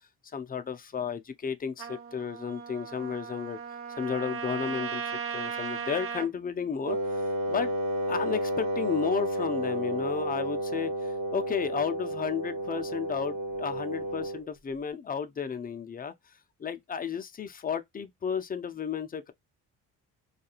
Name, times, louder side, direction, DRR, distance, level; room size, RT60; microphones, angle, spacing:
voice 1, 0.3-3.6 4.0-7.7 8.1-16.1 16.6-19.3, left 7 dB, 25° left, 0.5 m, -33 dB
Trumpet, 1.8-6.3, right 7 dB, 40° right, 0.6 m, -37 dB
Wind instrument woodwind instrument, 6.9-14.5, right 1 dB, 70° right, 1.1 m, -31 dB
2.4 x 2.3 x 2.9 m
supercardioid pair, 70°, 37 cm